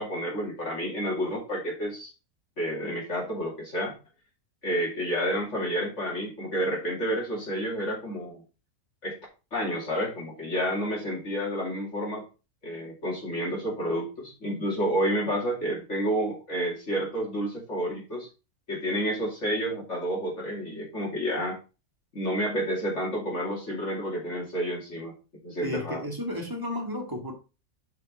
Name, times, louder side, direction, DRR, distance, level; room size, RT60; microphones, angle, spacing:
voice 1, 0.0-2.1 2.6-3.9 4.6-8.4 9.0-9.2 9.5-12.2 12.6-18.3 18.7-21.6 22.1-25.1 25.4-26.0, equal, 50° left, 2.9 m, -30 dB
voice 2, 25.6-27.3, left 1 dB, 15° right, 2.0 m, -33 dB
6.3 x 5.4 x 4.9 m
omnidirectional pair, 1.6 m